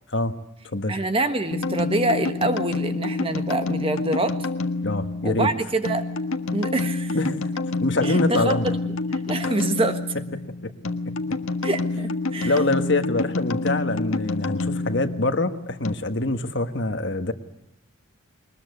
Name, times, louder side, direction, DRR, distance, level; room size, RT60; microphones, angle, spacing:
voice 1, 0.9-4.5 5.2-6.1 6.5-7.2 8.0-8.9 9.3-10.0 11.6-12.6, right 2 dB, 25° right, 8 dB, 1.5 m, -26 dB
sound 1, 1.5-15.9, left 3 dB, 85° left, 1.6 m, -28 dB
voice 2, 4.8-5.5 7.1-7.4 7.8-8.7 9.4-9.5 10.6-10.7 12.4-17.3, left 2 dB, 55° left, 8 dB, 1.5 m, -24 dB
22.0 x 20.5 x 9.6 m, 0.83 s
head